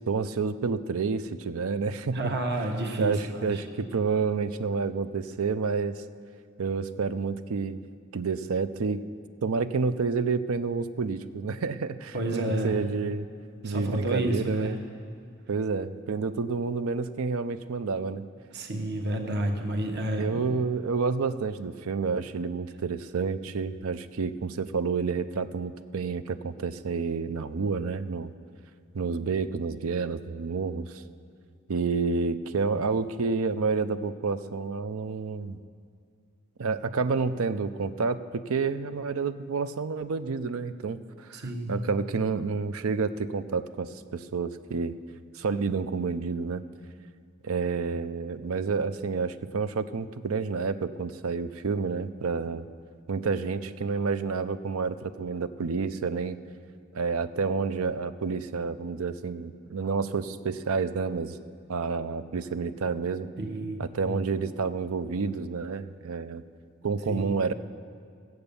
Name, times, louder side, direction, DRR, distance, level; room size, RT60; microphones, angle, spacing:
voice 1, 0.1-2.2 3.0-6.0 6.6-7.8 8.1-9.0 9.4-13.3 13.6-14.8 15.5-18.2 20.2-28.3 28.9-31.0 31.7-35.6 36.6-41.0 41.3-44.9 45.3-46.6 47.4-52.6 53.1-56.4 56.9-61.4 61.7-63.3 63.8-66.4 66.8-67.5, right 4 dB, 80° right, 12 dB, 0.5 m, -29 dB
voice 2, 2.1-3.6 12.1-12.7 13.6-14.8 18.5-20.5 41.3-41.7 63.4-64.2 67.1-67.2, right 1 dB, 50° right, 2 dB, 1.2 m, -30 dB
16.5 x 7.9 x 6.9 m, 2.3 s
head